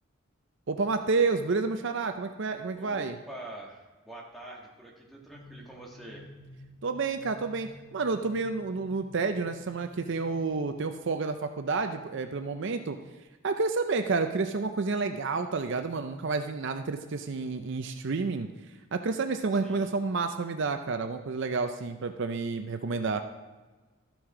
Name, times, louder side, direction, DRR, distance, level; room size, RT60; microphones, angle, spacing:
voice 1, 0.7-3.2 6.8-13.0 13.4-18.5 18.9-23.2, right 4 dB, 60° right, 7 dB, 0.5 m, -30 dB
voice 2, 2.7-6.2 19.5-19.9, right 1 dB, ahead, -2 dB, 1.7 m, -45 dB
sound 1, 5.3-10.5, left 1 dB, 85° left, 1.1 m, -52 dB
13.0 x 6.1 x 4.9 m, 1.3 s
head